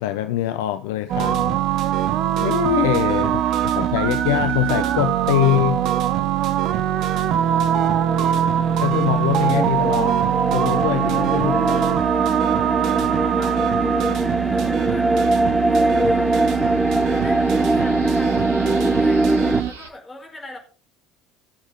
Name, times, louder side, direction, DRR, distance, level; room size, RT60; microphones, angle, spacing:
voice 1, 0.0-2.0 2.4-3.4 3.8-5.9 8.8-10.2 10.5-11.8 13.0-13.2, left 14 dB, 65° left, 0.6 m, -23 dB
sound 1, 1.1-19.7, right 11 dB, 50° right, 0.8 m, -22 dB
voice 2, 3.2-3.8 8.0-8.5 10.3-10.4 11.6-12.2 13.1-13.7 14.5-15.1 15.7-16.3 17.1-19.3 19.6-20.6, left 2 dB, 20° left, 4.8 m, -38 dB
sound 2, 7.3-19.6, right 1 dB, 5° right, 0.6 m, -22 dB
sound 3, 13.5-19.9, right 5 dB, 75° right, 1.3 m, -44 dB
17.0 x 7.1 x 3.6 m
figure-of-eight pair, 65°, 0 cm